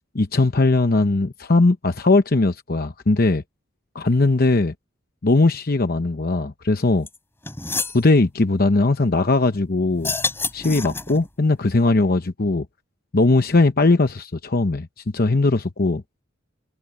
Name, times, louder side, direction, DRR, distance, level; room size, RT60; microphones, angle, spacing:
voice 1, 0.1-3.4 3.9-4.7 5.2-7.1 7.9-10.1 10.5-12.7 13.1-14.9 15.1-16.0, left 2 dB, 50° left, 0.8 m, -19 dB
sound 1, 7.1-7.2 7.4-8.0 9.9-11.3, left 3 dB, 10° left, 3.5 m, -27 dB
head